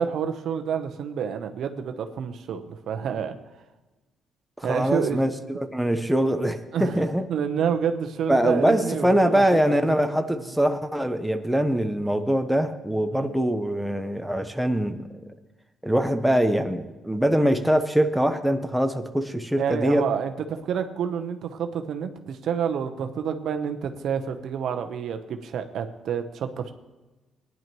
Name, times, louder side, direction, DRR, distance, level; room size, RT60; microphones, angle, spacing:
voice 1, 0.0-3.4 4.6-5.2 6.7-7.0 7.3-9.6 10.3-10.5 13.1-13.3 19.6-26.7, right 7 dB, 70° right, 7 dB, 0.9 m, -28 dB
voice 2, 4.6-7.3 8.3-15.1 15.8-20.1, equal, 5° right, 6 dB, 0.8 m, -23 dB
18.0 x 10.5 x 3.1 m, 1.1 s
cardioid pair, 90°, 0 cm